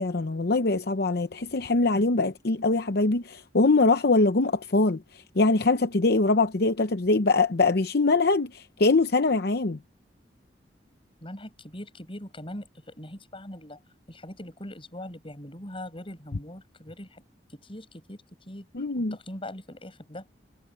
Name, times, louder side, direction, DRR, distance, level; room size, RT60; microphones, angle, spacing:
voice 1, 0.0-9.8 18.7-19.2, left 3 dB, 60° left, 0.8 m, -23 dB
voice 2, 11.2-13.8 14.1-17.2 17.5-18.7 19.0-20.3, left 1 dB, 30° left, 6.5 m, -41 dB
head